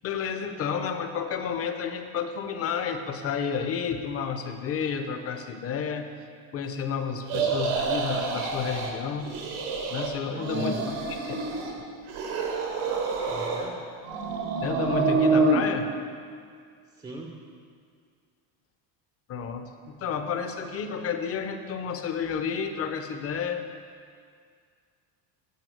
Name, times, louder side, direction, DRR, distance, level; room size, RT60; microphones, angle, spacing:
voice 1, 0.0-6.1 6.5-9.3 9.9-10.8 11.1-11.4 11.8-11.9 14.6-15.9 19.3-23.6, left 6 dB, 30° left, 7 dB, 0.6 m, -31 dB
sound 1, 7.3-8.9 9.2-10.1 10.3-11.7 12.1-13.7 14.0-15.6, right 4 dB, 85° right, 1.6 m, -27 dB
voice 2, 10.2-10.8 13.3-13.8 16.9-17.4, right 2 dB, 10° right, 0 dB, 0.5 m, -40 dB
9.3 x 5.0 x 7.8 m, 2.1 s
cardioid pair, 150°, 47 cm